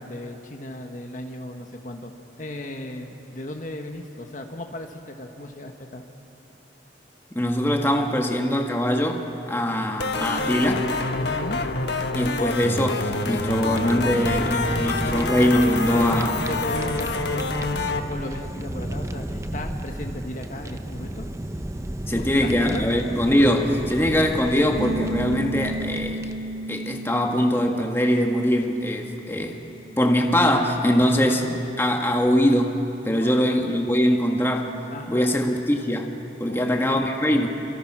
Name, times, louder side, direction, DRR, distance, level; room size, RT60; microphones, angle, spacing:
voice 1, 0.0-6.0 11.1-11.6 15.9-17.7 18.0-21.3 22.1-22.9 31.0-31.6 33.1-33.5 34.9-35.4 36.4-37.0, left 1 dB, 45° left, 4 dB, 1.4 m, -36 dB
voice 2, 7.3-10.9 12.1-16.4 22.1-26.3 26.7-29.6 30.0-34.7 35.1-36.1 36.4-37.5, equal, 15° left, 2 dB, 1.6 m, -22 dB
sound 1, 10.0-18.0, left 3 dB, 65° left, 1.5 m, -27 dB
Fire, 13.2-26.7, right 1 dB, 15° right, 0.6 m, -34 dB
Bass guitar, 24.8-31.0, right 1 dB, 65° right, 0.7 m, -34 dB
29.5 x 26.5 x 6.2 m, 2.9 s
head